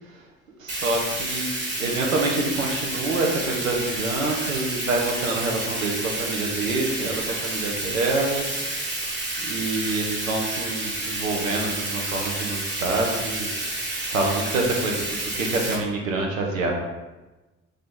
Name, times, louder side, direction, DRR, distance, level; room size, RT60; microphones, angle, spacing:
voice 1, 0.6-9.1 9.4-13.5 14.1-16.7, right 2 dB, 85° right, 0 dB, 0.5 m, -27 dB
Bathtub (filling or washing), 0.7-15.8, right 2 dB, 25° right, 1.1 m, -30 dB
3.2 x 2.8 x 3.6 m, 1.1 s
figure-of-eight pair, 45°, 39 cm